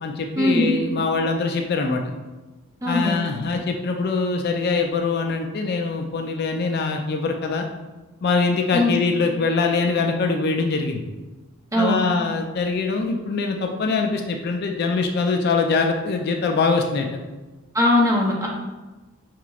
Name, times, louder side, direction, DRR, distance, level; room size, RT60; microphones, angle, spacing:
voice 1, 0.0-2.0 2.9-7.7 8.2-11.1 11.7-17.1, left 4 dB, 45° left, 3 dB, 0.3 m, -23 dB
voice 2, 2.8-3.2 8.7-8.9 11.7-12.0 17.7-18.5, left 1 dB, 15° right, -2 dB, 0.6 m, -20 dB
4.9 x 2.9 x 2.3 m, 1.2 s
head